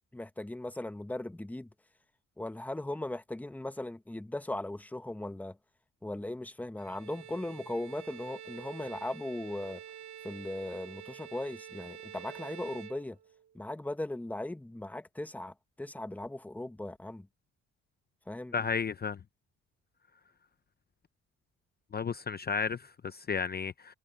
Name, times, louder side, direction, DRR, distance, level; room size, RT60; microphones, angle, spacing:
voice 1, 0.1-1.7 2.4-5.6 6.0-9.8 10.2-13.2 13.5-17.3 18.3-18.5, left 1 dB, 5° left, 1.0 m, -38 dB
Bowed string instrument, 6.8-13.6, right 10 dB, 70° right, 2.7 m, -48 dB
voice 2, 18.5-19.2 21.9-23.9, left 6 dB, 30° left, 0.7 m, -33 dB
cardioid pair, 90°, 30 cm